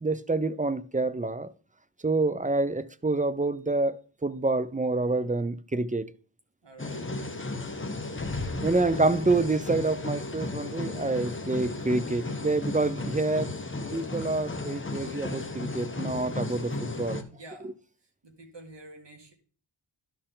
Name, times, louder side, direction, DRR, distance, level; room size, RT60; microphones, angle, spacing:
voice 1, 0.0-1.5 2.0-6.1 8.6-13.5 13.9-17.2, right 3 dB, 15° right, 0.5 m, -27 dB
voice 2, 6.6-7.1 8.1-8.9 17.3-17.7 18.0-19.3, right 2 dB, 60° right, 2.4 m, -49 dB
sound 1, 6.8-17.2, left 2 dB, 25° left, 1.1 m, -34 dB
12.5 x 4.5 x 3.8 m
cardioid pair, 45°, 47 cm